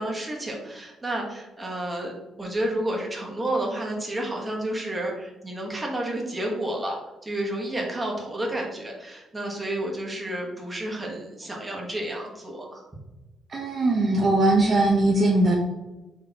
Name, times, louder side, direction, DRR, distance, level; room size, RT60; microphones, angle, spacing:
voice 1, 0.0-7.0 7.2-12.9, right 1 dB, 20° right, -2 dB, 1.1 m, -30 dB
voice 2, 13.5-15.6, right 2 dB, 45° right, -1 dB, 0.6 m, -20 dB
4.0 x 3.3 x 2.8 m, 1.1 s
cardioid pair, 90°, 0 cm